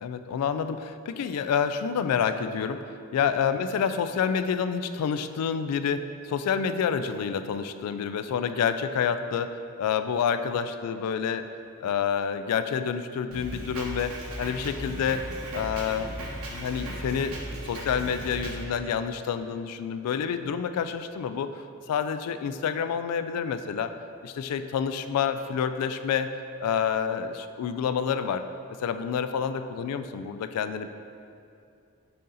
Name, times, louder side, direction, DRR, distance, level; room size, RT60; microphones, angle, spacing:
voice 1, 0.0-11.5 11.8-15.3 15.5-16.2 16.5-17.4 17.6-23.9 24.2-26.3 26.6-28.4 28.8-30.9, left 7 dB, 80° left, 13 dB, 0.3 m, -28 dB
Drum kit, 13.3-18.6, right 1 dB, 65° right, 0.9 m, -37 dB
6.5 x 4.0 x 3.8 m, 2.5 s
head